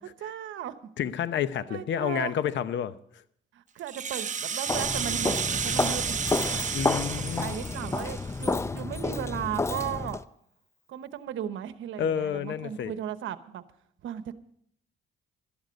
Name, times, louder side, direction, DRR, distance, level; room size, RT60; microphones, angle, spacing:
voice 1, 0.2-0.7 1.7-2.4 3.5-6.6 7.4-10.2 10.9-13.6 14.0-14.3, right 10 dB, 80° right, 12 dB, 1.0 m, -36 dB
voice 2, 1.0-3.2 6.7-7.5 12.0-12.9, left 9 dB, 70° left, 14 dB, 0.8 m, -30 dB
Rattle (instrument), 3.8-8.6, right 7 dB, 40° right, 0.8 m, -32 dB
Walk footsteps, 4.7-10.2, left 3 dB, 15° left, 0.5 m, -30 dB
12.0 x 12.0 x 5.2 m, 0.66 s
cardioid pair, 90°, 20 cm